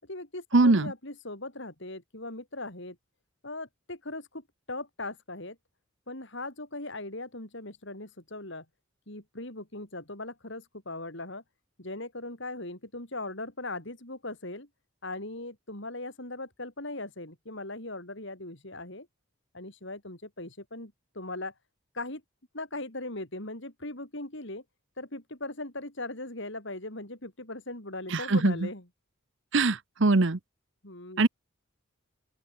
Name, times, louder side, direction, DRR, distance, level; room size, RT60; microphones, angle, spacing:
voice 1, 0.0-3.0 3.4-5.6 6.1-8.6 9.1-11.4 11.8-14.7 15.0-19.1 19.5-21.5 21.9-22.2 22.5-24.6 25.0-28.9 30.8-31.2, left 2 dB, 55° left, 5.0 m, -39 dB
voice 2, 0.5-0.9 28.1-28.5 29.5-30.4 31.2-31.3, right 3 dB, 55° right, 0.9 m, -22 dB
open air
head